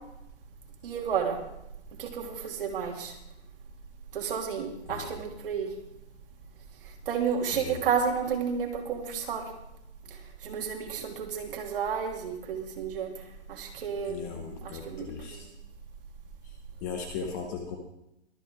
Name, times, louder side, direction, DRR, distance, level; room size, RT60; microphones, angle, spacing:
voice 1, 0.8-1.4 2.0-3.1 4.1-5.7 7.1-9.4 10.4-13.1 13.5-15.4, right 7 dB, 50° right, 2 dB, 2.8 m, -31 dB
voice 2, 14.1-15.5 16.8-17.8, left 6 dB, 15° left, 4 dB, 0.8 m, -37 dB
23.0 x 9.0 x 3.6 m, 0.84 s
hypercardioid pair, 165°, 35 cm